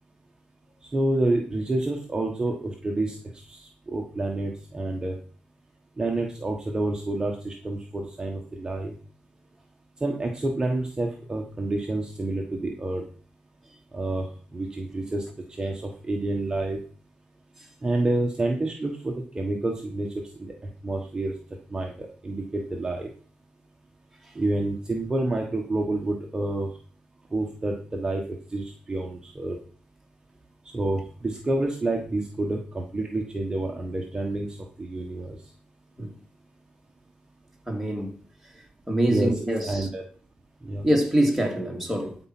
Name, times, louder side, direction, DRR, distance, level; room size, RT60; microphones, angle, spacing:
voice 1, 0.8-3.2 3.5-5.2 6.0-8.9 10.0-13.0 13.9-14.3 14.5-15.2 15.6-16.8 17.8-20.1 20.4-20.5 20.8-21.3 21.7-23.1 24.3-26.7 27.3-28.2 28.5-29.6 30.7-34.5 34.8-35.4 39.1-39.3 39.6-40.0 40.6-40.9, right 2 dB, 20° right, 1.3 m, -28 dB
voice 2, 37.7-38.2 38.9-39.9 40.8-42.2, right 1 dB, ahead, 2.5 m, -24 dB
12.5 x 4.6 x 6.0 m
cardioid pair, 125°, 4 cm